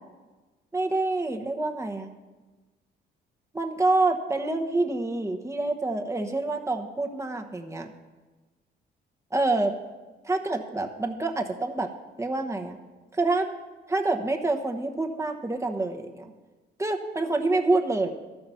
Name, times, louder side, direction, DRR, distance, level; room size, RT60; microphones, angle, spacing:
voice 1, 0.7-2.1 3.5-7.9 9.3-9.7 10.3-11.9 12.2-12.8 13.1-13.5 13.9-16.3 16.8-18.1, right 2 dB, 15° right, 3 dB, 1.1 m, -27 dB
13.0 x 5.7 x 5.6 m, 1.3 s
cardioid pair, 90°, 20 cm